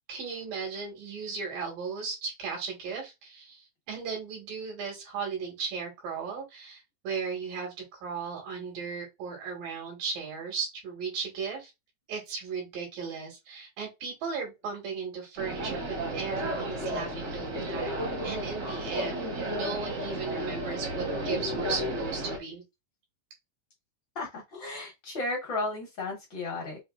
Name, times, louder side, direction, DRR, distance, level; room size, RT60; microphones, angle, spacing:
voice 1, 0.1-11.7 12.1-17.9 18.2-22.6, right 5 dB, 80° right, 3.6 m, -36 dB
sound 1, 15.4-22.4, right 1 dB, 50° right, 1.1 m, -33 dB
voice 2, 24.1-26.8, left 2 dB, 55° left, 1.3 m, -34 dB
6.3 x 2.8 x 2.4 m
omnidirectional pair, 3.9 m